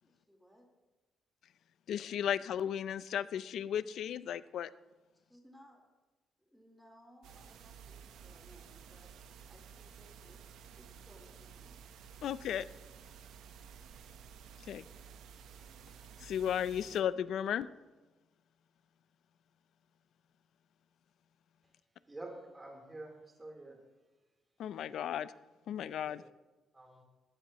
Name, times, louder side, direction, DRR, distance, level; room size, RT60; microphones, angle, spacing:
voice 1, 0.0-0.7 5.1-5.9 6.4-9.1 9.5-11.8, equal, ahead, -1 dB, 4.3 m, -62 dB
voice 2, 1.9-4.7 12.2-12.7 14.7-14.8 16.2-17.7 24.6-25.3 25.7-26.2, left 9 dB, 75° left, 15 dB, 0.5 m, -35 dB
sound 1, 7.2-17.0, right 7 dB, 85° right, 1.1 m, -53 dB
voice 3, 22.0-23.1 23.4-23.8 26.0-26.2 26.7-27.0, right 2 dB, 20° right, -2 dB, 3.8 m, -47 dB
20.0 x 15.0 x 3.1 m, 1.2 s
cardioid pair, 90°, 0 cm